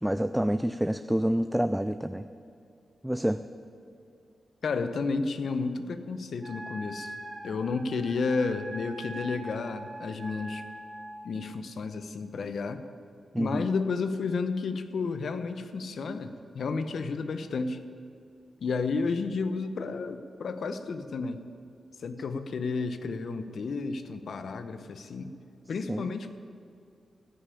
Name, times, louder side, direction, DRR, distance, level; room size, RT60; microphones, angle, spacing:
voice 1, 0.0-2.3 3.0-3.4 13.3-13.7 25.9-26.0, equal, 5° right, 10 dB, 0.4 m, -27 dB
voice 2, 4.6-10.6 11.2-12.8 13.4-17.8 18.6-21.4 22.0-25.3 25.7-26.3, left 4 dB, 75° left, 10 dB, 0.8 m, -32 dB
Wind instrument woodwind instrument, 6.4-11.3, right 1 dB, 45° right, 3.1 m, -42 dB
15.0 x 5.7 x 9.8 m, 2.4 s
cardioid pair, 50°, 0 cm